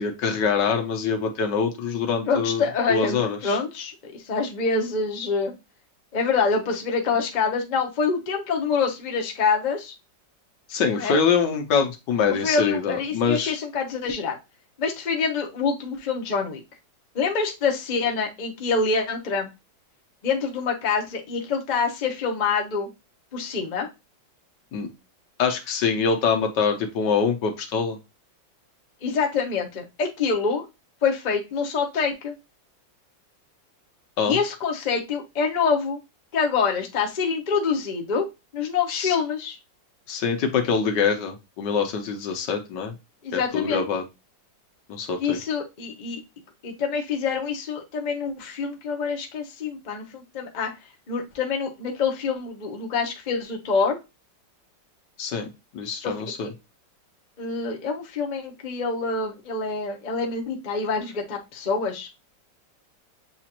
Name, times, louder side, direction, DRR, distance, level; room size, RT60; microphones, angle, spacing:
voice 1, 0.0-2.6 2.9-3.6 10.7-13.6 24.7-24.9 25.4-28.0 34.2-34.4 38.9-39.2 40.1-42.9 43.3-44.0 44.9-45.4 55.2-55.5 55.7-56.5, left 6 dB, 70° left, 5 dB, 1.4 m, -24 dB
voice 2, 2.3-5.5 6.1-9.9 10.9-11.2 12.4-14.4 14.8-16.6 17.1-19.5 20.2-22.9 23.3-23.9 29.0-30.7 31.0-32.3 34.2-36.0 36.3-38.3 38.5-39.6 43.2-43.9 45.2-46.2 46.6-50.7 51.1-54.0 56.0-56.1 57.4-62.1, left 5 dB, 40° left, 2 dB, 0.6 m, -26 dB
7.1 x 2.5 x 2.9 m, 0.24 s
omnidirectional pair, 2.0 m